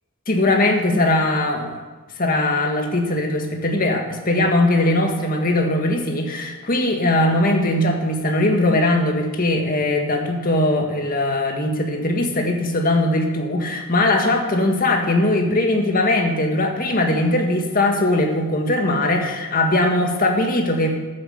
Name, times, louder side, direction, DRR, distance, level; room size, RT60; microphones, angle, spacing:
voice 1, 0.3-1.8 2.2-21.0, left 1 dB, 45° left, 2 dB, 1.9 m, -20 dB
12.0 x 9.1 x 6.6 m, 1.3 s
head